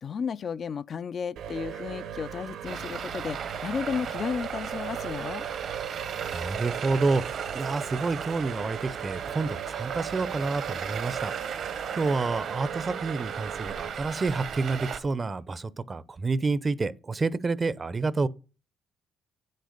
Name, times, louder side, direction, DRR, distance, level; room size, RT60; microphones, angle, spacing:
voice 1, 0.0-5.5, left 6 dB, 50° left, 0.4 m, -33 dB
sound 1, 1.4-13.9, right 9 dB, 80° right, 1.4 m, -38 dB
Traffic noise roadway noise, 2.6-15.0, right 7 dB, 60° right, 1.1 m, -36 dB
voice 2, 6.3-11.3 11.9-18.3, right 3 dB, 30° right, 0.6 m, -29 dB
7.7 x 6.6 x 6.6 m
cardioid pair, 90°, 0 cm